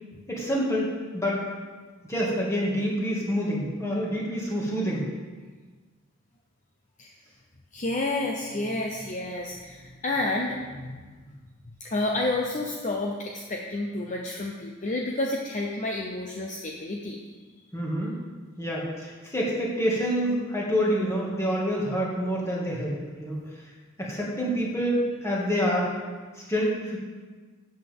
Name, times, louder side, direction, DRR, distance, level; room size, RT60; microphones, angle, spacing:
voice 1, 0.3-1.4 2.1-5.1 17.7-18.2 18.6-23.4 24.0-25.9 26.5-27.0, equal, 15° left, -4 dB, 2.1 m, -27 dB
voice 2, 7.7-11.0 11.8-17.2, left 2 dB, 35° left, 0 dB, 0.7 m, -30 dB
13.0 x 7.8 x 3.6 m, 1.4 s
head